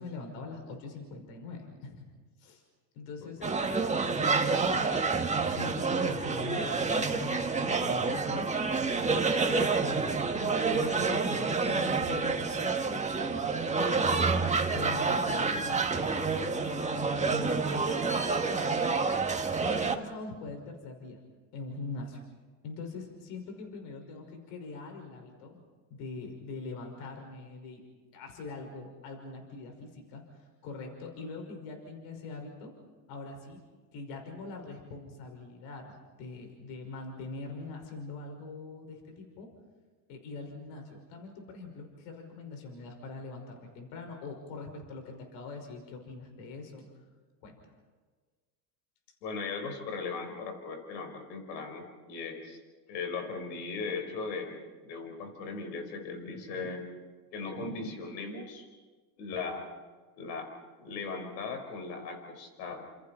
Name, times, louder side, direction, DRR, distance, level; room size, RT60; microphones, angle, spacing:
voice 1, 0.0-2.1 2.4-2.6 2.9-3.5 4.6-5.1 5.4-9.2 9.8-14.0 14.3-18.0 19.6-21.2 21.5-22.2 22.6-25.6 25.9-27.8 28.1-32.7 33.1-33.6 33.9-39.5 40.1-46.9 47.4-47.6, left 3 dB, 70° left, 3 dB, 5.8 m, -43 dB
voice 2, 3.2-3.5 49.2-52.6 52.9-56.9 57.3-58.7 59.2-59.7 60.2-60.5 60.8-62.9, left 4 dB, 90° left, 5 dB, 5.1 m, -38 dB
sound 1, 3.4-20.0, right 4 dB, 15° right, 1.8 m, -28 dB
30.0 x 28.0 x 4.5 m, 1.4 s
supercardioid pair, 100°, 49 cm